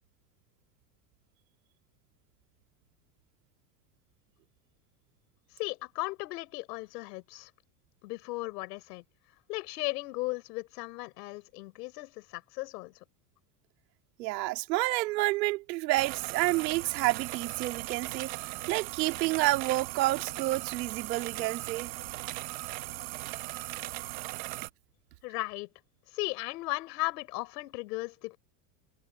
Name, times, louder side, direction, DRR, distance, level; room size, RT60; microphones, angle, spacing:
voice 1, 5.6-7.5 8.0-9.0 9.5-12.9 25.2-25.7 26.1-28.4, left 21 dB, 70° left, 4.5 m, -36 dB
voice 2, 14.2-21.9, right 18 dB, 85° right, 2.3 m, -29 dB
sound 1, 16.0-24.7, right 20 dB, 45° right, 1.1 m, -38 dB
supercardioid pair, 180°, 49 cm